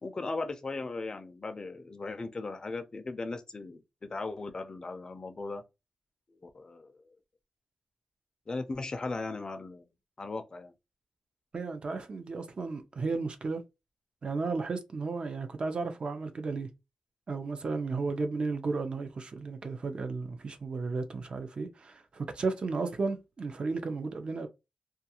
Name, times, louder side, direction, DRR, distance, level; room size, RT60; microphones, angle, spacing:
voice 1, 0.0-5.6 6.4-7.0 8.5-9.9 10.2-10.7, left 3 dB, 35° left, 0.4 m, -37 dB
voice 2, 11.5-13.6 14.2-16.7 17.3-24.5, right 4 dB, 50° right, 0.5 m, -34 dB
2.4 x 2.3 x 2.8 m
wide cardioid pair, 115°, 2 cm